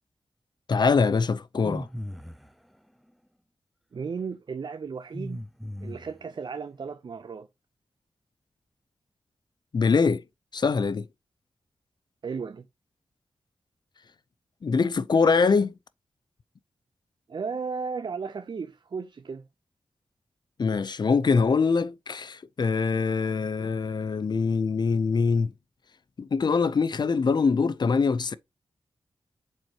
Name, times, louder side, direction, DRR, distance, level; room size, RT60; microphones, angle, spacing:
voice 1, 0.7-1.9 9.7-10.2 10.5-11.1 14.6-15.7 20.6-25.5 26.2-28.3, left 5 dB, 50° left, 0.6 m, -23 dB
sound 1, 1.6-2.5 5.1-6.3, equal, ahead, 0.5 m, -37 dB
voice 2, 3.9-5.4 5.8-7.5 12.2-12.6 17.3-19.4, right 5 dB, 55° right, 0.5 m, -34 dB
7.6 x 4.4 x 2.9 m
wide cardioid pair, 80°, 9 cm